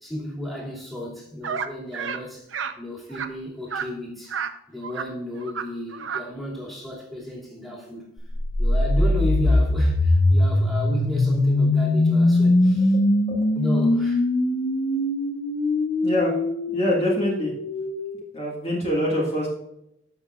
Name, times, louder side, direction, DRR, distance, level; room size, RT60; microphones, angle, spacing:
voice 1, 0.0-2.5 2.8-4.4 4.7-8.1 8.6-13.0 13.5-14.2, left 1 dB, ahead, -4 dB, 2.4 m, -32 dB
sound 1, 1.4-1.7 1.9-2.2 2.5-2.7 3.1-3.3 3.7-3.9 4.3-4.5 4.8-5.1 5.4-5.6 5.9-6.2, right 7 dB, 90° right, 0.7 m, -30 dB
sound 2, 8.3-18.2, left 1 dB, 50° left, 0.7 m, -21 dB
voice 2, 16.0-16.3 16.7-17.5 18.3-19.5, left 1 dB, 35° left, -4 dB, 1.6 m, -25 dB
14.0 x 5.9 x 2.4 m, 0.80 s
head